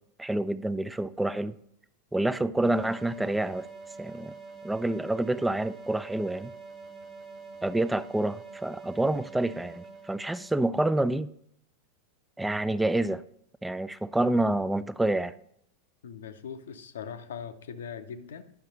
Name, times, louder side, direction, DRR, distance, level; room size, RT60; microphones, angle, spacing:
voice 1, 0.2-1.6 2.1-3.7 4.0-4.3 4.6-6.5 7.6-11.3 12.4-13.2 13.6-15.3, right 1 dB, 5° right, 16 dB, 0.3 m, -28 dB
sound 1, 2.6-10.8, right 4 dB, 30° right, 1.4 m, -45 dB
voice 2, 16.0-18.4, left 7 dB, 60° left, 11 dB, 0.6 m, -40 dB
10.0 x 6.3 x 3.9 m, 0.73 s
figure-of-eight pair, 90°, 0 cm